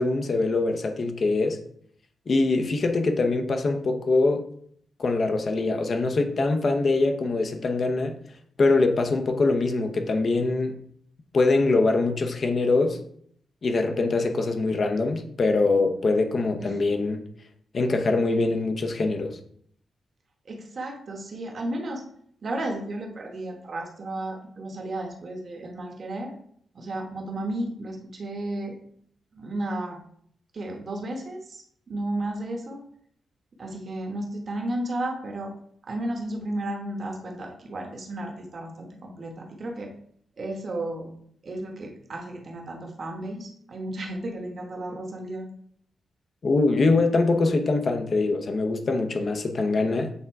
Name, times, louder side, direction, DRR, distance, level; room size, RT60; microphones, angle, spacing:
voice 1, 0.0-1.6 2.3-4.5 5.0-8.2 8.6-10.8 11.3-13.0 13.6-17.2 17.7-19.4 46.4-50.1, left 3 dB, 35° left, 0.8 m, -23 dB
voice 2, 20.4-22.0 22.4-26.3 26.7-28.8 29.3-30.0 30.5-32.8 33.6-35.5 35.9-39.9 40.4-41.1 41.4-45.5, right 1 dB, 35° right, 1.2 m, -33 dB
8.2 x 3.6 x 4.6 m
wide cardioid pair, 175°, 0 cm